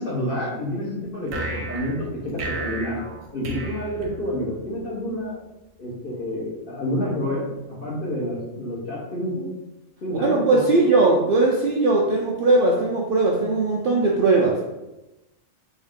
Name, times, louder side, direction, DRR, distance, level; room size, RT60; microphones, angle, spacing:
voice 1, 0.0-3.0 3.3-5.4 5.8-9.5 10.0-10.8, left 1 dB, 45° left, -5 dB, 1.0 m, -28 dB
sound 1, 1.3-4.7, right 3 dB, 80° right, 1.1 m, -34 dB
voice 2, 10.2-14.6, right 3 dB, 60° right, -3 dB, 0.6 m, -19 dB
3.6 x 2.7 x 3.5 m, 0.97 s
omnidirectional pair, 1.4 m